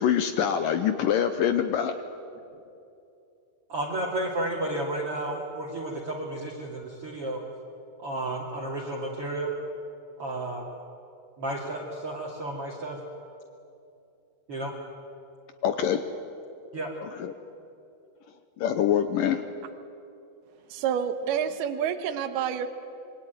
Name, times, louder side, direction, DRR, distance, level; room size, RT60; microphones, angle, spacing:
voice 1, 0.0-1.9 15.6-16.0 17.0-17.3 18.6-19.4, left 9 dB, 75° left, 9 dB, 2.1 m, -25 dB
voice 2, 3.7-7.4 8.0-9.5 10.2-10.6 11.4-13.0 14.5-14.7 16.7-16.9, right 1 dB, 40° right, -2 dB, 3.0 m, -32 dB
voice 3, 20.7-22.7, right 8 dB, 70° right, 9 dB, 3.1 m, -28 dB
26.5 x 23.0 x 9.4 m, 2.6 s
omnidirectional pair, 4.9 m